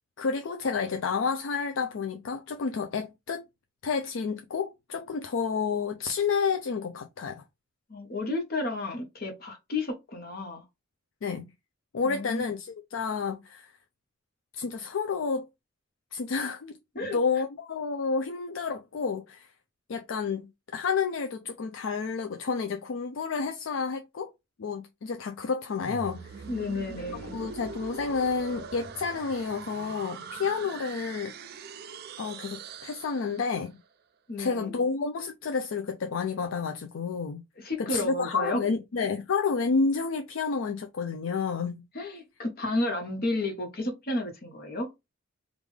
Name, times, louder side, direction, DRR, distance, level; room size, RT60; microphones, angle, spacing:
voice 1, 0.2-3.4 3.8-7.4 11.2-11.5 11.9-13.7 14.5-15.5 16.1-16.7 17.0-19.5 19.9-20.4 20.7-24.3 24.6-26.4 27.3-31.3 32.2-33.8 34.4-37.4 37.8-41.8, left 5 dB, 80° left, 0.4 m, -30 dB
voice 2, 7.9-10.6 12.0-12.5 16.9-17.2 26.5-27.3 34.3-34.8 37.6-38.6 41.9-44.9, left 2 dB, 50° left, 1.1 m, -32 dB
sound 1, 25.8-33.7, right 5 dB, 50° right, 0.4 m, -42 dB
3.5 x 2.5 x 3.2 m
head